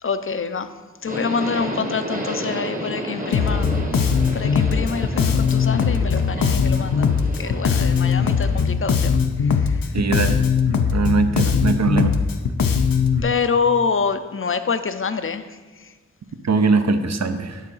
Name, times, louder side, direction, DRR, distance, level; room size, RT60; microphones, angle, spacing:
voice 1, 0.0-0.7 1.0-7.1 7.4-9.9 13.2-15.9, left 5 dB, 40° left, 10 dB, 0.5 m, -26 dB
Subway metro underground, 1.0-8.6, right 1 dB, 25° right, 1.1 m, -31 dB
Bass guitar, 3.3-13.2, left 6 dB, 90° left, 0.5 m, -20 dB
voice 2, 9.9-10.4 10.9-12.1 16.4-17.6, right 4 dB, 55° right, 8 dB, 0.6 m, -20 dB
9.1 x 3.7 x 5.5 m, 1.4 s
cardioid pair, 40°, 33 cm